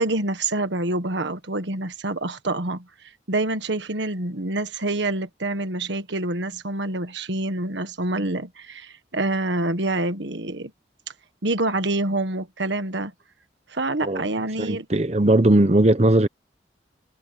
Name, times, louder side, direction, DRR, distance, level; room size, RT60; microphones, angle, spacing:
voice 1, 0.0-10.7 11.4-13.1 13.7-14.9, right 2 dB, 70° right, 1.5 m, -26 dB
voice 2, 14.6-16.3, right 1 dB, 35° right, 0.9 m, -18 dB
head